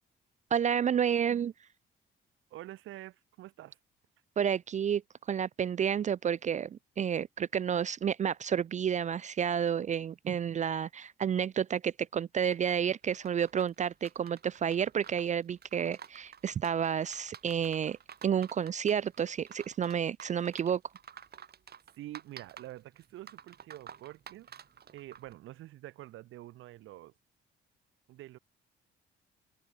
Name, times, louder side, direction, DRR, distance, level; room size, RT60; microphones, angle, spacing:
voice 1, 0.5-1.5 4.4-5.0 5.3-18.0 18.2-20.8, right 8 dB, 35° right, 0.4 m, -30 dB
voice 2, 2.5-3.8 22.0-24.5 24.9-27.1 28.1-28.4, right 15 dB, 85° right, 2.7 m, -47 dB
sound 1, 12.5-25.3, right 8 dB, 55° right, 6.4 m, -52 dB
open air
cardioid pair, 90°, 20 cm